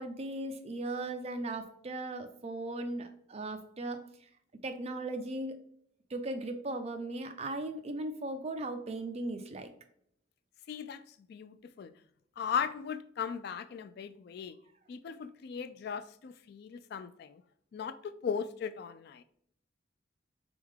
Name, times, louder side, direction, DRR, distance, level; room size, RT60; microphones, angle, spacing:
voice 1, 0.0-4.3 4.6-5.6 6.1-9.7, right 2 dB, 35° right, 0.5 m, -37 dB
voice 2, 10.7-11.0 11.3-11.9 12.4-14.6 14.9-17.4 17.7-19.2, left 7 dB, 55° left, 0.3 m, -37 dB
3.6 x 3.5 x 3.5 m
head